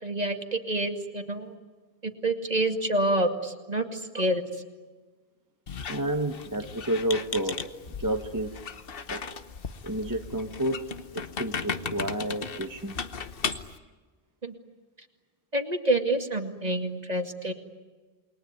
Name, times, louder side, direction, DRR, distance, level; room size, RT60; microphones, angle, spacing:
voice 1, 0.0-1.5 2.0-4.4 14.4-14.5 15.5-17.5, right 1 dB, 40° right, 5 dB, 2.4 m, -27 dB
Squeak, 5.7-13.8, left 5 dB, 65° left, 1.3 m, -36 dB
voice 2, 5.9-7.7 8.0-8.6 9.1-9.2 9.8-12.9, right 1 dB, 20° right, 4 dB, 1.3 m, -30 dB
28.5 x 21.5 x 9.5 m, 1.3 s
omnidirectional pair, 1.0 m